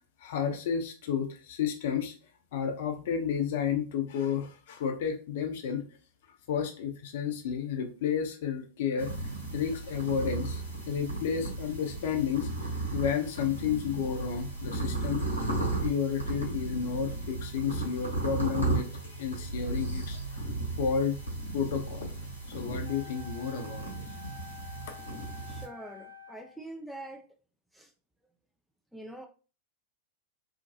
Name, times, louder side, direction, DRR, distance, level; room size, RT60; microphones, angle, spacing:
voice 1, 0.2-2.1 2.5-5.8 6.5-9.1 9.5-12.5 12.9-15.3 15.8-20.4 20.8-21.2 21.5-22.2 22.5-23.9, left 7 dB, 55° left, 0.6 m, -31 dB
sound 1, 9.0-25.6, right 2 dB, 90° left, 0.9 m, -35 dB
Wind instrument woodwind instrument, 22.8-26.6, left 5 dB, 75° right, 0.5 m, -49 dB
voice 2, 25.5-27.3 27.7-27.9 28.9-29.3, right 1 dB, ahead, 0.3 m, -44 dB
2.5 x 2.2 x 2.7 m
figure-of-eight pair, 90°, 0 cm